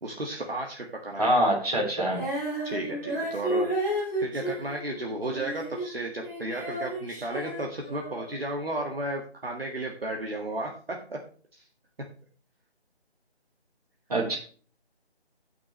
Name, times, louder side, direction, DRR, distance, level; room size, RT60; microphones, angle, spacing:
voice 1, 0.0-1.3 2.6-3.8 4.2-10.7 11.1-11.2 11.5-11.6, right 1 dB, 60° right, 0 dB, 1.8 m, -33 dB
voice 2, 1.2-2.2 14.1-14.4, right 1 dB, 35° right, -3 dB, 3.9 m, -24 dB
Female singing, 2.1-6.0 6.2-8.3, right 1 dB, 20° right, 5.7 m, -32 dB
15.5 x 6.1 x 3.2 m, 0.43 s
figure-of-eight pair, 175°, 33 cm